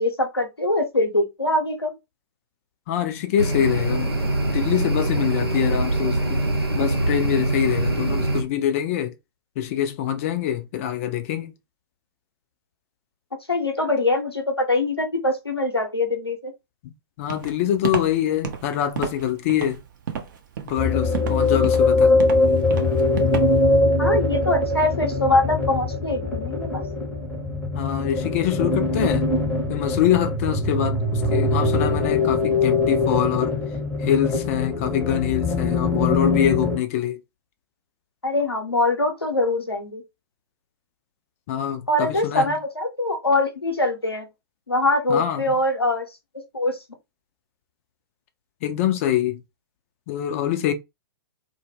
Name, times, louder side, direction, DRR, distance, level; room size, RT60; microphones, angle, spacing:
voice 1, 0.0-1.9 13.5-16.5 24.0-26.8 38.2-40.0 41.9-44.3 44.7-46.1 46.3-46.8, left 2 dB, 85° left, 0.7 m, -23 dB
voice 2, 2.9-4.1 4.5-6.4 6.7-9.1 9.6-11.5 17.2-19.8 20.6-22.1 27.7-29.3 29.7-33.5 34.0-37.2 41.5-42.6 45.1-45.5 48.6-49.4 50.1-50.7, left 10 dB, 35° left, 0.4 m, -24 dB
sound 1, 3.4-8.4, right 2 dB, 85° right, 0.7 m, -23 dB
Walk footsteps, 17.3-23.8, right 8 dB, 50° right, 0.5 m, -32 dB
sound 2, 20.8-36.8, left 3 dB, 5° left, 0.7 m, -22 dB
2.1 x 2.0 x 3.0 m
figure-of-eight pair, 110°, 13 cm